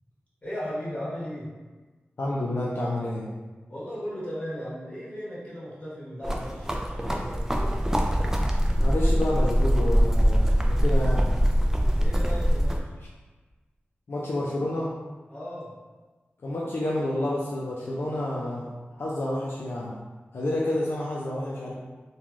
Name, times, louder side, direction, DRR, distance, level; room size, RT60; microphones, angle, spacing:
voice 1, 0.4-1.5 3.7-7.5 12.0-12.9 15.3-15.7, equal, 30° left, -9 dB, 1.3 m, -36 dB
voice 2, 2.2-3.3 8.8-11.3 14.1-14.9 16.4-18.7 19.0-20.0 20.3-21.7, left 1 dB, 70° left, -5 dB, 0.4 m, -29 dB
sound 1, 6.2-12.8, equal, 10° right, 0.3 m, -23 dB
3.0 x 2.2 x 2.4 m, 1.3 s
wide cardioid pair, 55°, 4 cm